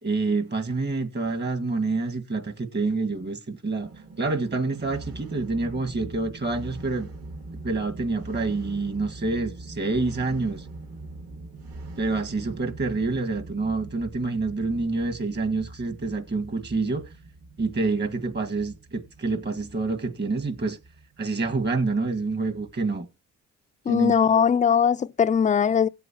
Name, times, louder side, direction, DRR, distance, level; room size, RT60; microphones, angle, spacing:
voice 1, 0.0-3.9 4.2-7.1 7.6-10.7 12.0-17.0 17.6-20.8 21.2-23.1 23.9-24.1, right 3 dB, 35° right, 1.9 m, -27 dB
sound 1, 3.8-23.0, right 2 dB, 50° right, 2.2 m, -42 dB
voice 2, 23.9-25.9, left 7 dB, 25° left, 0.4 m, -20 dB
17.5 x 7.8 x 3.0 m
cardioid pair, 90°, 30 cm